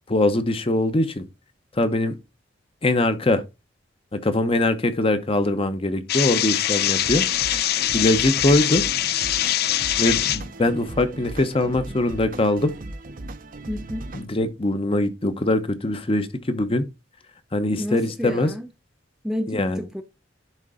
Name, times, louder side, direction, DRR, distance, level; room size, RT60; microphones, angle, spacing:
voice 1, 0.1-1.2 1.8-2.1 2.8-3.4 4.1-7.7 7.9-8.8 10.0-12.7 14.1-16.8 17.5-18.5 19.5-19.8, left 2 dB, 30° left, 0.8 m, -22 dB
sound 1, 6.1-10.4, left 13 dB, 55° left, 0.5 m, -23 dB
sound 2, 7.0-14.3, right 2 dB, 45° right, 0.7 m, -37 dB
voice 2, 13.7-14.1 17.8-18.7 19.2-20.0, left 1 dB, 5° right, 0.5 m, -30 dB
10.5 x 3.8 x 3.7 m
head